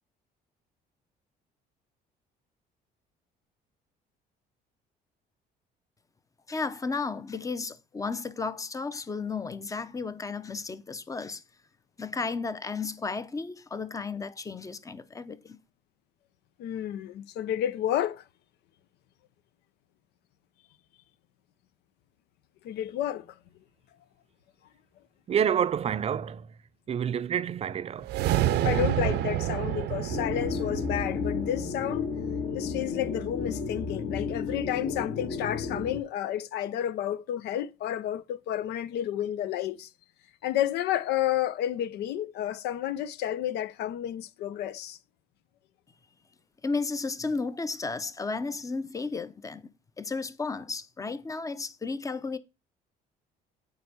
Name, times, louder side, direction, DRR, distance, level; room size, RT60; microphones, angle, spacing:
voice 1, 6.5-11.4 12.0-15.6 46.6-49.6 50.0-52.4, left 4 dB, 20° left, 0.7 m, -33 dB
voice 2, 16.6-18.2 22.6-23.4 28.6-32.1 32.5-39.9 40.4-45.0, left 11 dB, 75° left, 0.6 m, -31 dB
voice 3, 25.3-26.5 26.9-28.2, right 8 dB, 35° right, 0.5 m, -28 dB
sound 1, 28.0-32.4, right 13 dB, 80° right, 0.7 m, -29 dB
sound 2, 30.1-36.0, left 5 dB, 50° left, 1.4 m, -32 dB
8.9 x 3.4 x 6.6 m
cardioid pair, 110°, 17 cm